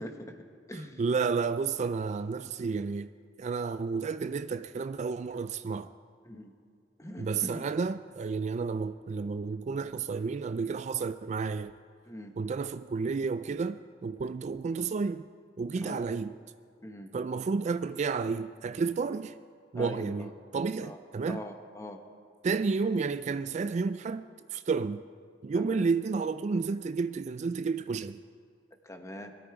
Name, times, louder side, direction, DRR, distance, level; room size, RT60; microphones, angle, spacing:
voice 1, 0.0-1.0 6.2-6.5 7.0-7.6 12.0-12.4 14.2-14.3 15.8-16.0 16.8-17.1 19.7-20.3 20.8-21.0 21.3-22.0 25.5-25.9 28.8-29.3, left 1 dB, 15° left, 1.1 m, -42 dB
voice 2, 1.0-3.1 3.4-5.9 7.2-11.8 12.4-15.3 15.6-16.3 17.1-19.4 19.7-21.4 22.4-25.0 25.4-28.2, right 4 dB, 40° right, 0.3 m, -31 dB
21.5 x 13.5 x 4.8 m
head